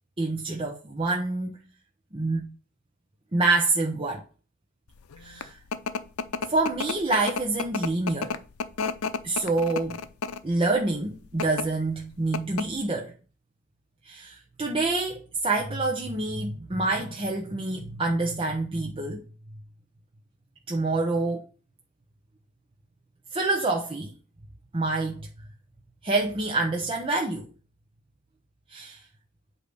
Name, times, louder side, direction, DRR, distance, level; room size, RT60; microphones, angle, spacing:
voice 1, 0.2-1.6 2.1-2.5 3.3-4.2 5.2-5.6 6.4-8.4 9.2-10.0 10.4-13.1 14.0-19.2 20.7-21.4 23.3-24.1 24.7-25.3 26.0-27.5 28.7-29.0, right 2 dB, 25° right, 0.8 m, -27 dB
sound 1, 5.1-10.5 11.2-11.6 12.0-12.1 12.3-12.8, left 5 dB, 85° left, 0.6 m, -31 dB
8.4 x 2.9 x 6.2 m
head